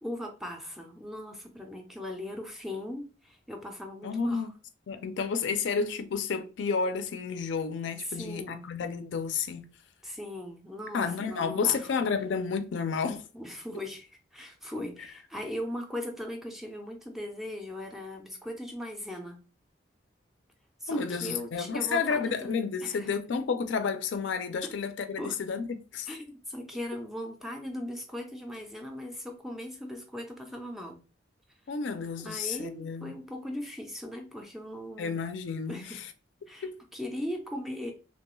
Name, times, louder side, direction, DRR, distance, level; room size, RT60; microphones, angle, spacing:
voice 1, 0.0-4.5 8.0-8.7 10.0-11.9 13.3-19.4 20.8-23.1 24.6-24.8 25.2-25.4 26.1-31.0 32.2-35.2 35.7-36.0 36.5-37.9, left 1 dB, ahead, 0.3 m, -39 dB
voice 2, 4.0-4.5 4.9-9.7 10.9-13.2 20.9-26.1 31.7-33.2 35.0-36.0 36.6-36.8, left 5 dB, 70° left, 0.4 m, -31 dB
2.9 x 2.2 x 3.0 m
head